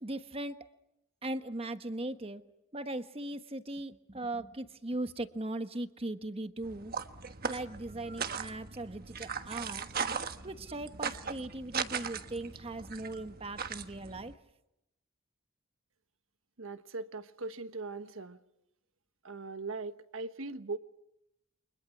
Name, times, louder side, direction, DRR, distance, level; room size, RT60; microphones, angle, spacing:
voice 1, 0.0-0.6 1.2-2.4 2.7-7.0 7.5-9.8 10.4-14.3, right 1 dB, 30° right, 1.3 m, -39 dB
sound 1, 6.6-14.3, right 6 dB, 50° right, 1.3 m, -39 dB
voice 2, 16.6-18.4 19.2-20.8, right 3 dB, 85° right, 1.3 m, -40 dB
29.5 x 25.0 x 6.1 m
head